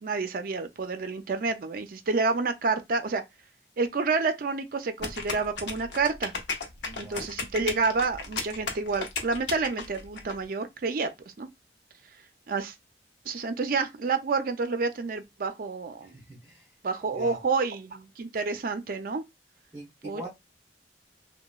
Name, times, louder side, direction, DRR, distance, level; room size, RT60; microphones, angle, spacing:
voice 1, 0.0-3.2 3.8-6.3 7.0-11.1 11.4-11.5 12.5-12.7 13.3-16.2 16.8-19.2 20.0-20.3, right 4 dB, 50° right, 0.4 m, -29 dB
sound 1, 5.0-10.3, left 4 dB, 70° left, 0.7 m, -34 dB
voice 2, 6.8-7.2 16.0-16.7 17.1-17.4 19.7-20.3, right 1 dB, 15° right, 0.8 m, -43 dB
2.9 x 2.2 x 2.3 m
head